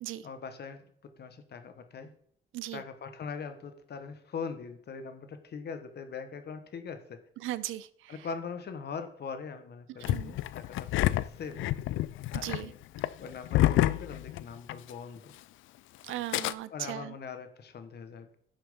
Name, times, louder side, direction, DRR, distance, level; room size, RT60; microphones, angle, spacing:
voice 1, 0.2-2.1 2.7-7.2 8.1-11.6 12.3-12.8 13.2-15.3 16.7-18.4, left 5 dB, 55° left, 8 dB, 1.3 m, -41 dB
voice 2, 7.4-8.1 10.1-10.3 12.4-12.7 16.0-17.1, right 14 dB, 85° right, 17 dB, 0.6 m, -37 dB
Engine starting, 10.0-14.9 15.2-15.3 16.1-16.5, left 15 dB, 80° left, 0.4 m, -28 dB
10.5 x 7.2 x 3.7 m, 0.64 s
cardioid pair, 90°, 20 cm